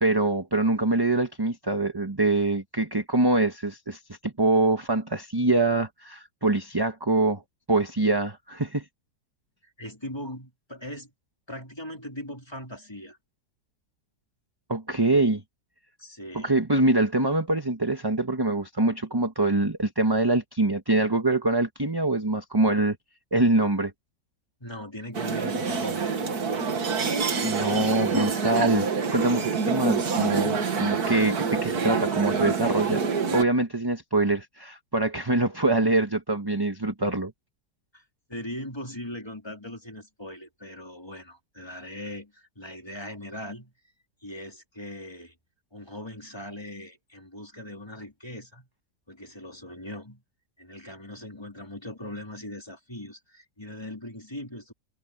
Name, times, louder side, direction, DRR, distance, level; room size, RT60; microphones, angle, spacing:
voice 1, 0.0-7.4 7.7-8.8 14.7-15.4 16.3-23.0 23.3-23.9 27.4-33.0 33.3-37.3, right 2 dB, 15° right, 1.3 m, -24 dB
voice 2, 9.6-11.1 11.5-13.2 16.0-16.5 24.6-26.6 37.9-38.0 38.3-43.7 44.2-45.4 45.7-48.7 49.1-50.2 50.6-54.7, left 1 dB, 15° left, 3.8 m, -40 dB
sound 1, 25.1-33.4, right 5 dB, 65° right, 2.3 m, -27 dB
omnidirectional pair, 1.8 m